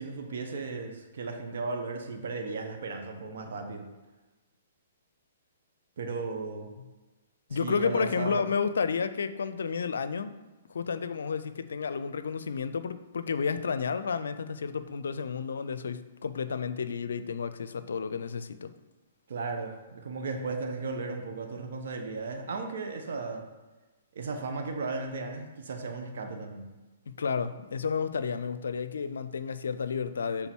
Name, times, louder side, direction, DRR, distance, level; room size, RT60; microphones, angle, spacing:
voice 1, 0.0-3.9 6.0-6.7 7.5-8.5 19.3-23.5 24.1-26.7, right 3 dB, 65° right, 3 dB, 1.1 m, -35 dB
voice 2, 7.5-10.4 10.7-18.7 27.1-30.5, left 6 dB, 75° left, 12 dB, 0.5 m, -31 dB
6.9 x 3.7 x 6.1 m, 1.2 s
hypercardioid pair, 125°, 0 cm